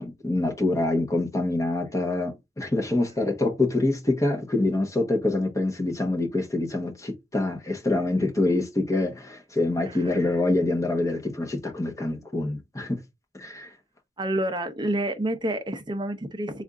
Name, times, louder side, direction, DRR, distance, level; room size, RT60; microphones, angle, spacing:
voice 1, 0.0-13.0 13.3-13.7, left 2 dB, 20° left, 1.0 m, -26 dB
voice 2, 14.2-16.6, right 1 dB, 25° right, 0.6 m, -28 dB
3.5 x 2.5 x 3.6 m
head